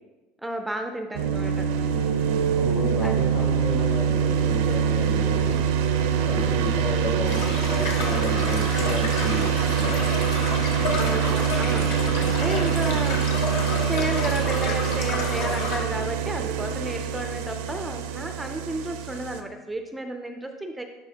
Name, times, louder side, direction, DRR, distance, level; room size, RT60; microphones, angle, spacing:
voice 1, 0.4-1.7 3.0-3.2 11.0-13.4 13.9-20.8, right 1 dB, 5° right, 5 dB, 0.4 m, -32 dB
sound 1, 1.1-19.4, right 7 dB, 85° right, 0.5 m, -24 dB
voice 2, 2.6-5.6 6.2-10.0, left 1 dB, 55° left, 0 dB, 1.5 m, -32 dB
sound 2, 7.3-15.8, left 3 dB, 85° left, 1.3 m, -31 dB
11.0 x 3.8 x 2.8 m, 1.1 s
cardioid pair, 150°, 0 cm